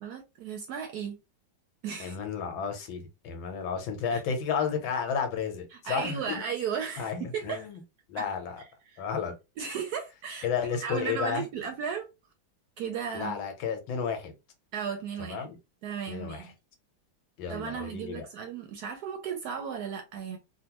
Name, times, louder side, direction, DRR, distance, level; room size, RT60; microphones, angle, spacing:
voice 1, 0.0-1.2 1.8-2.2 4.1-4.2 5.7-7.7 8.1-8.3 8.9-9.1 9.6-10.5 10.8-12.1 12.8-13.4 14.7-15.4 15.8-16.5 17.5-20.4, right 7 dB, 70° right, 0.9 m, -35 dB
voice 2, 2.0-6.4 7.0-7.8 8.1-8.6 9.0-9.3 10.4-11.4 13.1-14.3 15.2-15.6 16.1-16.5 17.4-18.2, left 6 dB, 90° left, 1.6 m, -32 dB
3.6 x 2.2 x 2.9 m
omnidirectional pair, 2.1 m